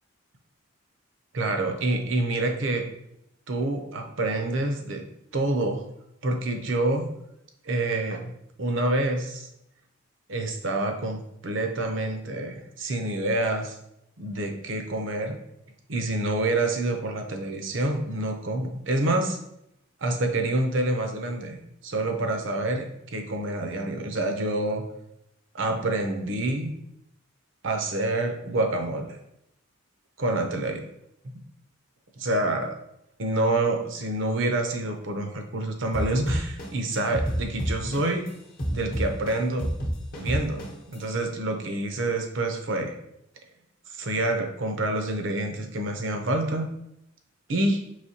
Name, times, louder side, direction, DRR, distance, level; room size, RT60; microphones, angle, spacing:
voice 1, 1.3-2.8 3.5-5.0 5.3-5.8 6.2-7.1 7.6-9.5 10.3-13.8 14.2-15.4 15.9-19.4 20.0-24.8 25.5-26.7 27.6-29.2 30.2-30.8 32.2-32.7 33.2-38.2 38.7-39.7 40.1-43.0 43.9-46.7 47.5-47.8, right 2 dB, 60° right, 4 dB, 0.6 m, -27 dB
sound 1, 35.9-38.3 38.6-40.9, equal, 45° left, 0.9 m, -28 dB
4.9 x 3.2 x 2.8 m, 0.80 s
head